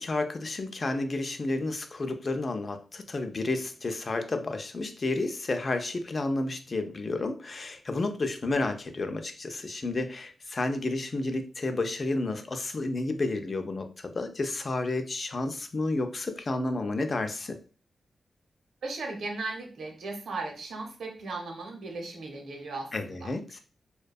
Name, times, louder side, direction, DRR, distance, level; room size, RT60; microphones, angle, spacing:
voice 1, 0.0-17.6 22.9-23.6, left 2 dB, 45° left, 7 dB, 0.3 m, -31 dB
voice 2, 18.8-23.3, right 3 dB, 85° right, 2 dB, 0.7 m, -37 dB
2.6 x 2.2 x 2.2 m, 0.37 s
cardioid pair, 90°, 0 cm